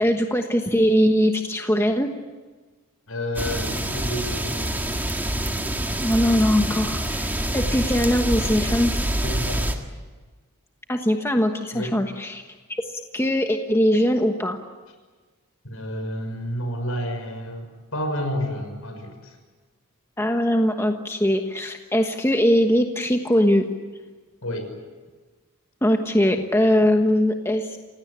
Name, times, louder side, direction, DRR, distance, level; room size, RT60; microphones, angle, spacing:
voice 1, 0.0-2.1 6.0-8.9 10.9-12.4 12.9-14.6 20.2-23.7 25.8-27.8, equal, 10° left, 4 dB, 1.2 m, -21 dB
voice 2, 3.1-4.8 9.2-9.7 11.7-12.0 15.6-19.3 24.4-24.7, equal, 70° left, 5 dB, 6.1 m, -30 dB
sound 1, 3.3-9.7, right 1 dB, 10° right, 1.7 m, -26 dB
28.0 x 17.5 x 10.0 m, 1.4 s
head